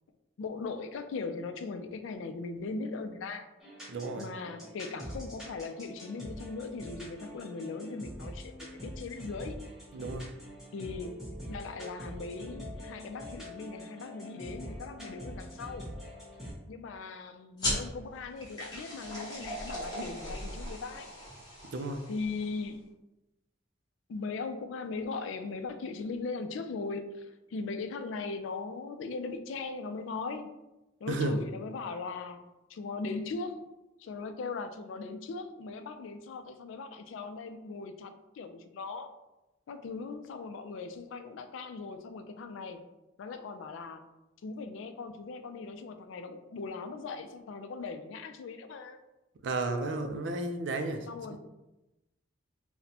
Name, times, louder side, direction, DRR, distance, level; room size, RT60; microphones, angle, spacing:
voice 1, 0.4-3.5 4.2-9.6 10.7-11.1 11.5-15.8 16.7-21.1 22.1-22.9 24.1-30.5 31.0-32.4 32.7-33.6 34.0-39.1 39.7-42.8 43.2-44.0 44.4-49.0 51.1-51.4, left 4 dB, 80° left, 9 dB, 0.3 m, -39 dB
sound 1, 3.6-16.5, equal, 5° right, 0.8 m, -44 dB
voice 2, 3.9-4.3 9.9-10.3 21.7-22.0 31.1-31.4 49.4-51.4, right 2 dB, 65° right, 6 dB, 0.4 m, -33 dB
sound 2, 17.6-22.7, equal, 20° left, 1.0 m, -38 dB
4.0 x 2.1 x 2.7 m, 0.98 s
head